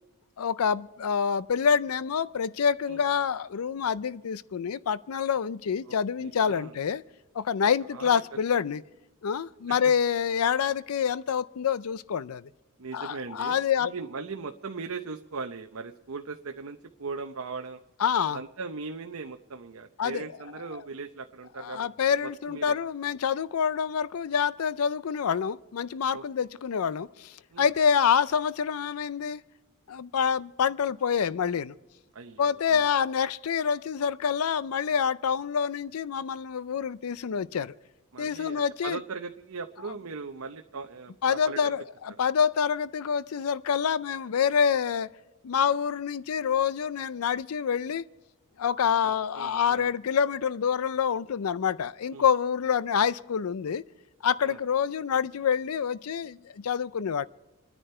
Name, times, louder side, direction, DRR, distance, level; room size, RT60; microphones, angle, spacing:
voice 1, 0.4-7.0 7.3-8.8 9.2-12.5 12.9-13.9 18.0-18.4 20.0-20.2 20.7-20.8 21.6-29.4 29.9-31.7 32.4-37.7 38.2-39.0 41.2-45.1 45.4-48.0 48.6-53.8 54.2-57.3, left 7 dB, 70° left, 0.5 m, -27 dB
voice 2, 5.9-6.7 7.9-8.2 12.8-17.8 18.3-22.8 26.1-26.2 27.5-27.7 32.1-32.9 38.1-41.7 49.4-49.9 52.1-52.3 54.4-54.6, right 4 dB, 65° right, 0.8 m, -39 dB
29.0 x 10.0 x 4.4 m
head